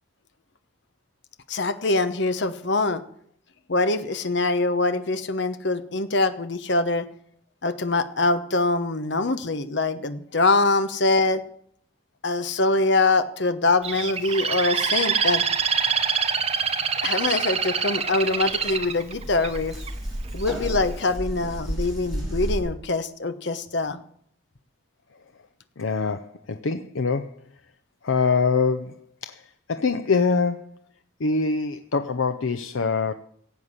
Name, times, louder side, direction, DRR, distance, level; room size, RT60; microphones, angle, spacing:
voice 1, 1.5-3.0 3.7-7.1 7.6-11.4 12.2-15.4 17.0-19.8 20.3-24.0, left 3 dB, 60° left, 10 dB, 1.0 m, -24 dB
Bird, 13.8-19.9 20.5-20.8, right 6 dB, 30° right, 0.9 m, -25 dB
sound 1, 18.1-18.2 18.4-22.6, equal, ahead, 4.6 m, -32 dB
voice 2, 25.8-27.4 28.0-28.9 29.2-30.8 31.2-33.1, left 4 dB, 90° left, 8 dB, 0.7 m, -24 dB
16.0 x 8.2 x 7.3 m, 0.66 s
head